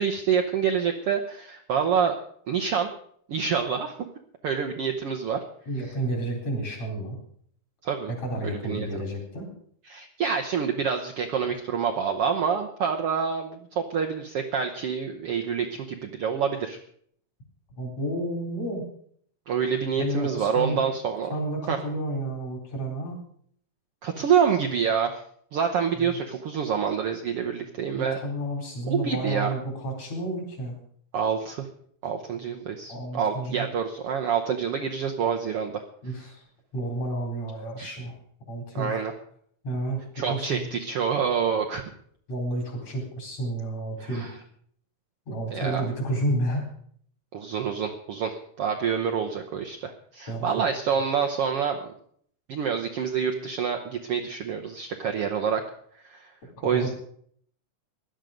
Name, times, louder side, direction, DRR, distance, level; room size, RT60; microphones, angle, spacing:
voice 1, 0.0-2.1 2.5-2.9 3.3-3.9 4.4-5.4 7.8-8.1 8.4-8.9 9.9-16.8 19.5-21.4 21.7-21.8 24.0-25.2 25.5-28.2 28.9-29.5 31.1-31.7 32.0-35.8 37.8-38.0 38.7-39.1 40.1-41.8 44.0-44.3 45.5-45.9 47.3-51.9 52.5-55.6 56.0-56.3 56.6-56.9, right 7 dB, 60° right, 3 dB, 1.7 m, -27 dB
voice 2, 5.7-7.2 8.1-9.5 17.8-18.8 20.0-20.8 21.3-23.2 26.0-26.2 27.9-30.8 32.9-33.7 36.0-36.4 36.7-38.2 38.5-38.9 39.6-40.7 42.3-44.3 45.3-46.7 50.3-50.5 56.6-56.9, right 1 dB, 55° left, 1 dB, 5.3 m, -31 dB
17.0 x 11.5 x 5.2 m, 0.62 s
omnidirectional pair, 3.6 m